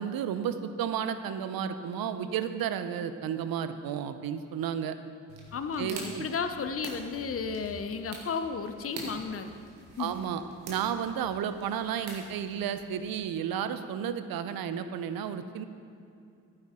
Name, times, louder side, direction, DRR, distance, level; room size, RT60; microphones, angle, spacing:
voice 1, 0.0-5.0 5.8-6.3 10.0-15.7, right 8 dB, 65° right, 11 dB, 0.7 m, -32 dB
sound 1, 5.3-13.1, right 2 dB, 85° right, 1.5 m, -46 dB
voice 2, 5.5-9.5 10.0-10.1, left 5 dB, 35° left, 8 dB, 0.8 m, -33 dB
11.5 x 9.7 x 3.7 m, 2.6 s
hypercardioid pair, 40°, 38 cm